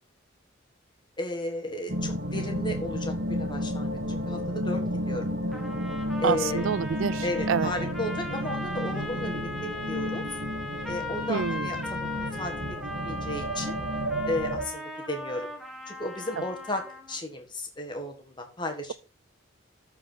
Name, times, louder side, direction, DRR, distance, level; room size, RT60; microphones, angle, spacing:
voice 1, 1.2-5.3 6.2-6.7 7.2-10.2 10.9-12.8 13.0-13.8 14.2-15.5 15.9-16.8 17.1-18.9, left 1 dB, 20° left, 1.6 m, -34 dB
sound 1, 1.9-14.7, equal, 50° right, 1.6 m, -32 dB
sound 2, 5.5-17.2, left 2 dB, ahead, 1.3 m, -38 dB
voice 2, 6.2-7.7 11.3-11.7, right 7 dB, 75° right, 0.4 m, -28 dB
13.5 x 4.6 x 3.8 m
head